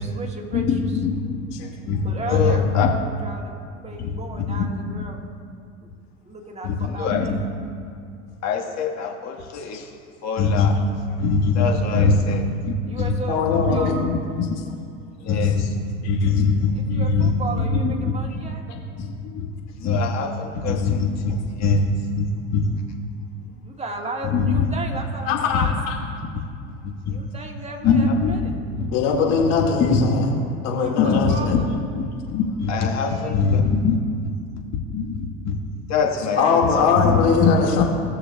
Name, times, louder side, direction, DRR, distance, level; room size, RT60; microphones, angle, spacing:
voice 1, 0.0-0.8 2.0-5.2 6.2-7.4 11.8-12.0 12.8-14.0 16.7-18.6 23.4-25.9 27.0-28.5 30.7-31.7 32.7-33.3 36.1-36.6, right 2 dB, 15° right, 0 dB, 1.6 m, -35 dB
voice 2, 0.5-1.5 1.9-2.9 4.0-5.0 6.6-7.4 8.4-9.8 10.2-10.8 11.2-13.1 13.5-14.2 15.2-15.7 16.1-17.3 17.6-18.1 19.0-19.5 19.8-21.8 22.2-22.3 22.5-22.6 24.3-24.6 25.3-25.4 26.8-27.1 27.8-28.4 28.8-28.9 29.4-30.4 30.9-31.6 32.0-33.9 34.9-35.5 35.9-36.4 36.8-37.5, left 4 dB, 45° left, 0 dB, 1.5 m, -22 dB
voice 3, 13.3-13.9 16.0-16.3 25.3-26.0 28.9-30.3 30.6-31.6 36.4-37.8, left 5 dB, 65° left, 0 dB, 2.0 m, -21 dB
18.5 x 6.5 x 2.3 m, 2.3 s
hypercardioid pair, 80°, 39 cm